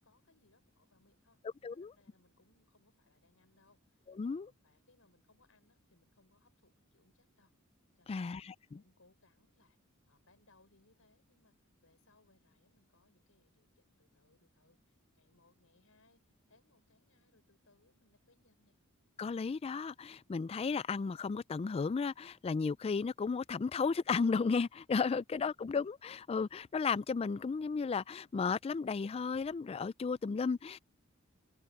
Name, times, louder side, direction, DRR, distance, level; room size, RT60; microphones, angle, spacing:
voice 1, 0.0-1.4 1.7-7.5 7.9-8.4 8.7-9.8 10.1-18.8 25.4-25.6, left 2 dB, 75° left, 4.9 m, -71 dB
voice 2, 4.2-4.5 8.1-8.8 19.2-30.8, left 5 dB, 30° left, 0.3 m, -34 dB
open air
head